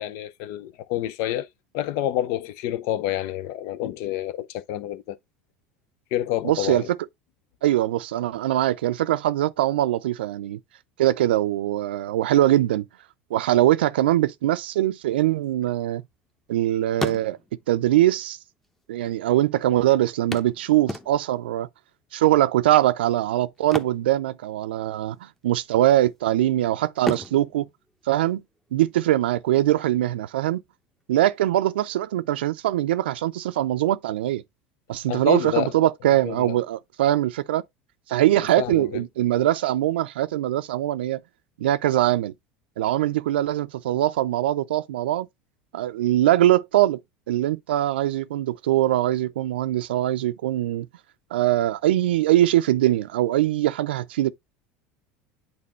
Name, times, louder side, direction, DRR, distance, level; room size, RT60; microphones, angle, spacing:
voice 1, 0.0-1.5 1.7-5.2 6.1-6.9 35.1-35.7 36.2-36.6 38.6-39.0, left 12 dB, 65° left, 0.6 m, -28 dB
voice 2, 6.4-7.0 7.6-10.6 11.0-12.8 13.3-16.0 16.5-17.4 17.7-18.4 18.9-21.7 22.1-27.7 28.1-28.4 28.7-30.6 31.1-34.4 34.9-37.6 38.1-41.2 41.6-42.3 42.8-45.3 45.7-47.0 47.3-50.9 51.3-54.3, right 14 dB, 85° right, 0.4 m, -22 dB
sound 1, 15.3-16.6 16.9-17.7 18.6-18.7 19.0-19.1 20.3-21.5 23.6-24.9 25.1-25.4 25.9-26.5 27.0-28.7 30.7-30.8 31.2-31.3, left 1 dB, 5° left, 0.9 m, -35 dB
8.7 x 4.1 x 3.0 m
hypercardioid pair, 90°, 5 cm